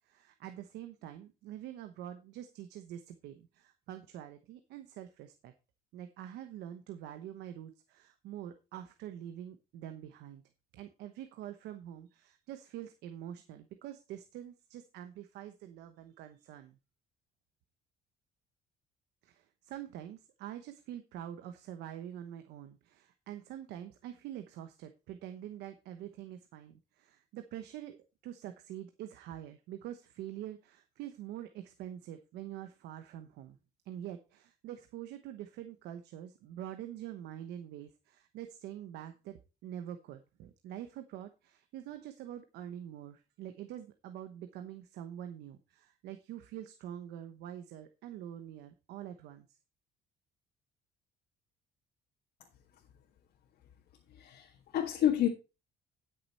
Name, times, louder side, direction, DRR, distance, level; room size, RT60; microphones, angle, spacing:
voice 1, 0.0-5.5 5.9-10.4 10.7-16.8 19.2-28.0 28.2-33.6 33.9-49.5, right 11 dB, 85° right, 8 dB, 1.0 m, -45 dB
voice 2, 54.1-55.3, left 11 dB, 70° left, 1 dB, 1.8 m, -29 dB
11.5 x 6.8 x 4.3 m, 0.30 s
cardioid pair, 110°, 17 cm